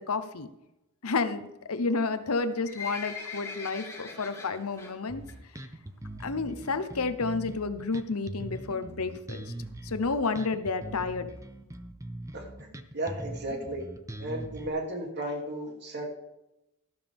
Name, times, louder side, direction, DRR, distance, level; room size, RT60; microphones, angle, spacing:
voice 1, 0.1-0.5 1.0-5.2 6.2-9.4 9.8-11.3, left 4 dB, 75° left, 11 dB, 0.9 m, -30 dB
Livestock farm animals working animals, 2.3-4.9 5.3-5.6 5.9-6.0 6.6-6.7 7.0-7.1 7.3-7.4 7.9-8.2 8.8-8.9 9.1-9.2 9.4-9.5 9.7-9.8 10.2-10.3 10.8-10.9 11.4-11.5, left 4 dB, 15° left, 3.0 m, -41 dB
Bass guitar, 5.1-14.7, right 1 dB, 15° right, 0.7 m, -41 dB
voice 2, 12.9-13.8 14.2-16.1, right 1 dB, 50° right, 1 dB, 2.8 m, -34 dB
13.0 x 12.0 x 3.6 m, 0.90 s
head